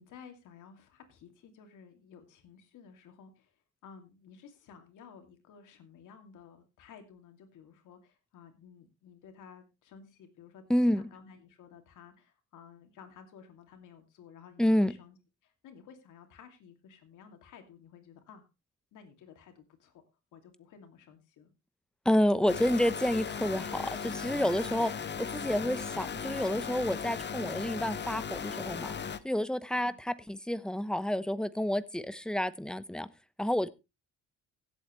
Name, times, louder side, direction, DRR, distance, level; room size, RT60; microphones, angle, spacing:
voice 1, 0.0-3.5 3.8-15.2 15.4-18.4 18.9-20.0 20.3-21.5 29.7-30.0, left 7 dB, 85° left, 2.6 m, -54 dB
voice 2, 10.7-11.1 14.6-14.9 22.0-24.9 25.2-28.9 29.2-33.1 33.4-33.7, left 1 dB, 5° left, 0.9 m, -29 dB
sound 1, 22.5-29.2, left 6 dB, 35° left, 0.9 m, -37 dB
16.5 x 8.2 x 3.1 m
cardioid pair, 90°, 30 cm